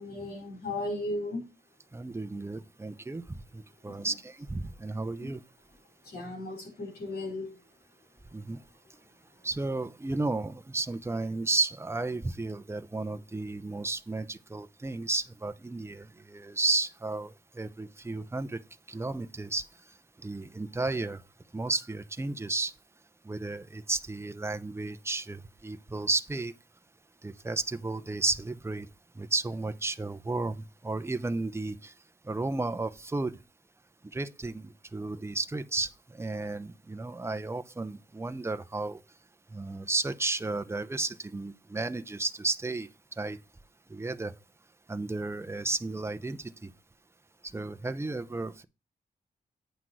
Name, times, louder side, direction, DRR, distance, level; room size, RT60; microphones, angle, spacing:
voice 1, 0.0-1.5 3.9-4.1 5.2-5.3 6.0-7.6, left 2 dB, 75° left, 4.6 m, -36 dB
voice 2, 1.9-3.2 3.8-5.4 8.3-8.6 9.4-17.3 17.6-18.6 18.9-19.6 20.2-21.2 21.5-22.7 23.3-26.5 27.2-28.9 29.2-30.5 30.8-31.7 32.3-33.3 34.1-35.9 36.2-39.0 39.5-42.9 43.2-43.4 43.9-44.3 44.9-46.7 47.5-48.6, right 3 dB, 15° right, 0.8 m, -33 dB
9.3 x 5.9 x 4.7 m
wide cardioid pair, 110°, 17 cm